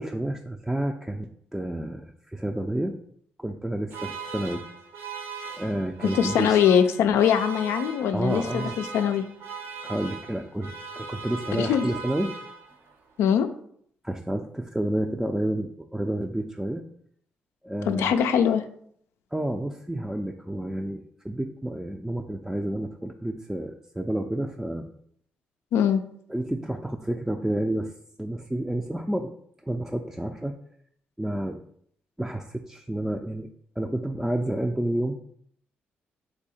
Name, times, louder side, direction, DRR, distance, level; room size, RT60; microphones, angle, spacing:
voice 1, 0.0-3.0 3.4-4.6 5.6-6.6 8.1-8.8 9.8-12.3 14.0-16.8 17.6-18.1 19.3-24.9 26.3-27.9 28.2-29.3 29.7-30.6 31.2-31.6 32.2-33.5 33.8-35.2, right 1 dB, 5° right, 3 dB, 0.4 m, -30 dB
sound 1, 3.9-12.9, right 5 dB, 75° right, 0.7 m, -38 dB
voice 2, 6.0-9.2 11.6-11.9 13.2-13.5 17.9-18.6 25.7-26.0, left 8 dB, 80° left, 9 dB, 0.4 m, -22 dB
3.6 x 2.7 x 4.1 m, 0.65 s
supercardioid pair, 60°, 4 cm